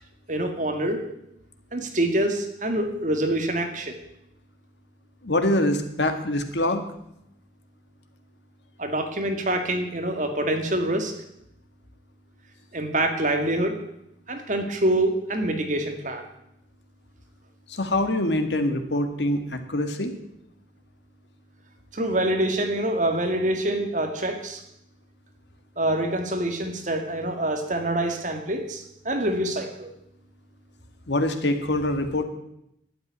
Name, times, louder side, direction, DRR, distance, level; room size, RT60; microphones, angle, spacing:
voice 1, 0.3-1.0 1.7-4.0 8.8-11.1 12.7-13.8 14.3-16.3 21.9-24.6 25.8-29.9, right 1 dB, 45° right, 5 dB, 2.0 m, -26 dB
voice 2, 5.2-6.8 17.7-20.1 31.1-32.2, left 1 dB, 75° left, 7 dB, 1.8 m, -24 dB
12.0 x 9.1 x 9.4 m, 0.80 s
head